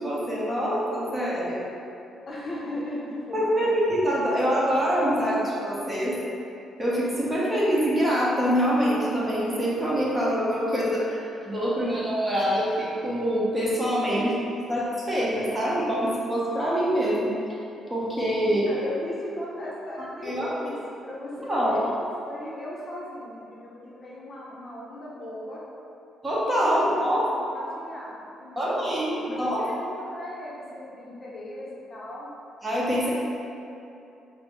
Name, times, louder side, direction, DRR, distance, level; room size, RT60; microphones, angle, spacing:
voice 1, 0.0-1.7 3.3-6.2 6.8-14.3 14.7-17.3 17.9-18.6 20.2-20.5 21.4-21.8 26.2-27.3 28.6-29.6 32.6-33.1, equal, 15° right, -7 dB, 0.9 m, -25 dB
voice 2, 2.3-3.8 14.1-14.3 18.4-20.8 21.0-25.6 26.6-28.8 29.1-32.3, left 1 dB, 40° left, -6 dB, 0.7 m, -37 dB
5.2 x 2.0 x 3.1 m, 2.7 s
cardioid pair, 90°, 0 cm